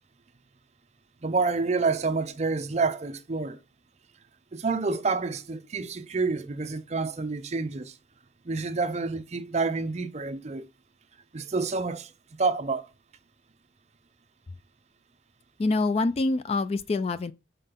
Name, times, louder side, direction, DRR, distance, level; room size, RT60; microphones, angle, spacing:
voice 1, 1.2-3.6 4.5-7.9 8.5-10.7 11.3-12.1 12.4-12.9, right 4 dB, 35° right, 0.6 m, -28 dB
voice 2, 15.6-17.3, left 3 dB, 35° left, 0.3 m, -25 dB
5.4 x 3.8 x 5.7 m
head